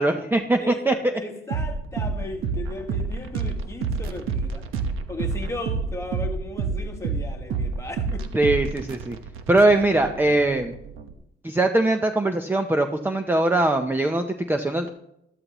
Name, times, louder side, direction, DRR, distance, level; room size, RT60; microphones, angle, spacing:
voice 1, 0.0-1.1 8.3-9.2 9.5-10.7 11.4-14.9, right 2 dB, 10° right, 0.6 m, -21 dB
voice 2, 0.6-4.6 5.1-8.3 9.7-10.3, left 2 dB, 15° left, 1.5 m, -36 dB
sound 1, 1.5-11.1, right 5 dB, 90° right, 1.1 m, -29 dB
13.5 x 12.5 x 3.0 m
cardioid pair, 120°, 20 cm